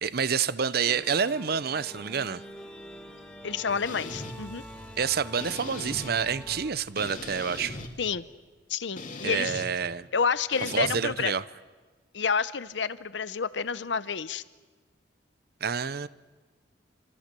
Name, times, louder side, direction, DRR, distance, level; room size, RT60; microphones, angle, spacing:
voice 1, 0.0-2.4 5.0-7.8 9.2-10.1 10.6-11.4 15.6-16.1, right 6 dB, 55° right, 0.7 m, -28 dB
sound 1, 0.8-6.7, equal, 5° left, 2.0 m, -45 dB
voice 2, 3.4-4.6 8.0-8.3 8.7-9.6 10.1-11.3 12.1-14.4, left 6 dB, 75° left, 0.8 m, -29 dB
sound 2, 3.7-8.5, right 1 dB, 75° right, 3.4 m, -53 dB
sound 3, 3.9-4.3 5.4-6.1 7.0-7.9 9.0-9.7 10.5-11.0, left 2 dB, 45° left, 2.3 m, -39 dB
27.5 x 25.0 x 6.8 m
head